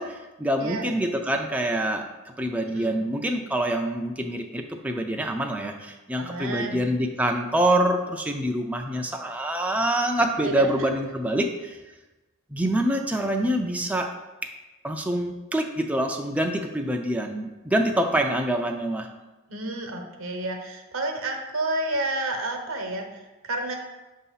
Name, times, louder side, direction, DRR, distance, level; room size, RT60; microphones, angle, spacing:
voice 1, 0.0-2.1 2.4-11.7 12.5-14.1 14.4-14.5 14.8-19.1, right 1 dB, 5° right, 2 dB, 0.3 m, -26 dB
voice 2, 0.6-0.9 2.7-3.0 6.2-6.9 10.4-10.9 19.5-23.8, right 1 dB, 80° right, 4 dB, 0.8 m, -30 dB
6.4 x 2.7 x 5.6 m, 1.1 s
head